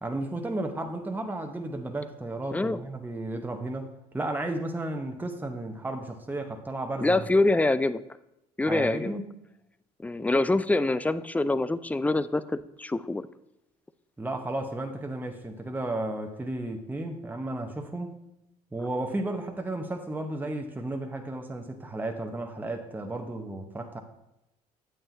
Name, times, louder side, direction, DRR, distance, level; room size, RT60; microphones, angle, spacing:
voice 1, 0.0-7.2 8.7-9.3 14.2-18.1 18.7-24.0, right 2 dB, 10° right, 4 dB, 0.9 m, -33 dB
voice 2, 2.5-2.8 7.0-8.0 8.6-9.2 10.0-13.3, left 2 dB, 5° left, 15 dB, 0.4 m, -25 dB
8.7 x 8.7 x 2.7 m, 0.89 s
hypercardioid pair, 60°, 20 cm